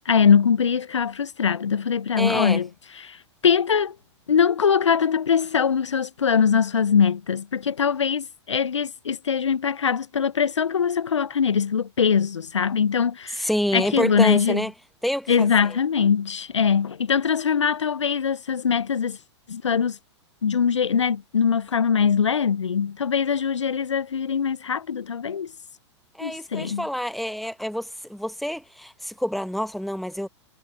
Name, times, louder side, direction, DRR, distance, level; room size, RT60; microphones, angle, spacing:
voice 1, 0.0-2.7 3.0-3.9 4.3-14.6 15.3-19.2 19.5-20.0 20.4-25.5 26.2-26.9, left 7 dB, 70° left, 1.0 m, -22 dB
voice 2, 2.2-2.6 13.4-14.7 15.0-15.8 26.1-30.3, equal, ahead, 1.7 m, -27 dB
figure-of-eight pair, 100°, 16 cm